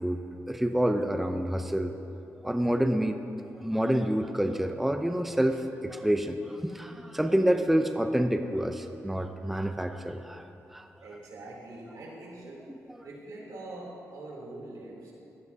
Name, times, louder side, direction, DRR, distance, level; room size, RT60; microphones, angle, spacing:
voice 1, 0.0-1.9 2.3-3.2 3.5-10.9 12.7-13.1, right 1 dB, 5° right, 6 dB, 0.5 m, -28 dB
voice 2, 11.0-12.6 13.0-15.1, right 2 dB, 80° right, -4 dB, 3.1 m, -43 dB
16.0 x 12.0 x 2.7 m, 2.8 s
cardioid pair, 105°, 6 cm